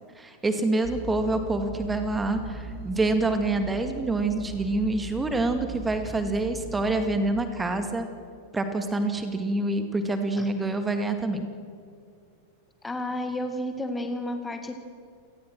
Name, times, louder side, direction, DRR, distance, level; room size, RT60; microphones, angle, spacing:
voice 1, 0.2-8.1 8.5-11.5, right 2 dB, 10° right, 7 dB, 2.1 m, -26 dB
sound 1, 0.8-7.2, right 2 dB, 40° right, 3.0 m, -39 dB
voice 2, 12.8-14.7, left 1 dB, 10° left, 6 dB, 2.0 m, -31 dB
28.0 x 19.5 x 6.3 m, 2.4 s
figure-of-eight pair, 90°, 0 cm